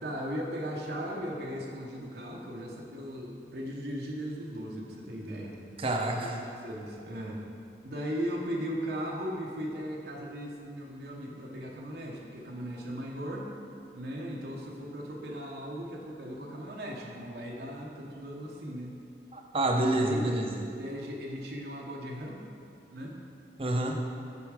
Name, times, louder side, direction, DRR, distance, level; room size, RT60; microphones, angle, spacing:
voice 1, 0.0-5.6 6.2-7.4 7.8-13.5 13.9-18.9 19.9-20.4 20.8-22.4 22.9-23.2, equal, 65° right, -1 dB, 0.8 m, -37 dB
voice 2, 5.8-6.4 19.3-20.6 23.6-24.0, right 1 dB, 30° right, 2 dB, 0.6 m, -28 dB
7.0 x 4.5 x 4.7 m, 2.5 s
head